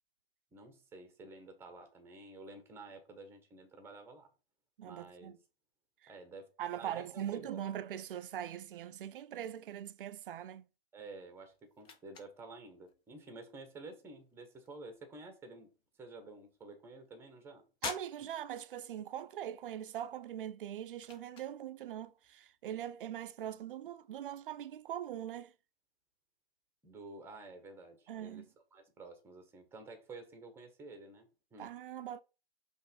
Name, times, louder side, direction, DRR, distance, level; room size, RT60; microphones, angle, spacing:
voice 1, 0.5-4.3 4.8-5.3 6.1-7.6 10.9-15.7 16.0-17.6 18.2-18.3 26.8-31.7, right 3 dB, 10° right, 1.2 m, -51 dB
voice 2, 4.8-5.4 6.0-6.1 6.6-10.6 17.8-25.5 28.1-28.5 31.6-32.2, right 10 dB, 60° right, 0.6 m, -41 dB
sound 1, 11.0-25.5, left 6 dB, 15° left, 0.8 m, -53 dB
5.4 x 3.3 x 5.2 m
hypercardioid pair, 145°, 30 cm